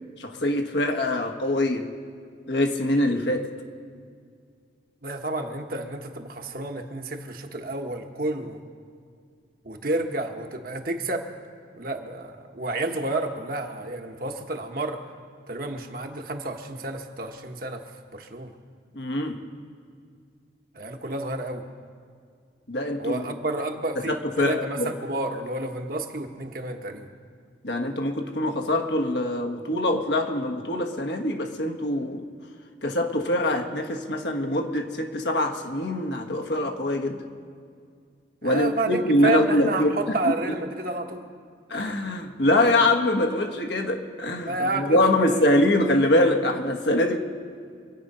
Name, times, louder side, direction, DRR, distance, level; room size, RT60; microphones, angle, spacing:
voice 1, 0.2-1.9 2.5-3.5 18.9-19.4 22.7-23.2 24.1-24.9 27.6-32.2 32.8-37.3 38.4-39.9 40.2-40.5 41.7-47.2, left 1 dB, 70° left, 3 dB, 1.5 m, -24 dB
voice 2, 5.0-8.6 9.6-11.3 11.7-15.0 15.5-17.8 18.1-18.5 20.7-21.6 23.0-27.1 38.4-41.2 44.4-45.0 45.3-45.6, right 2 dB, 50° right, 3 dB, 1.2 m, -30 dB
25.5 x 8.8 x 5.5 m, 2.2 s
head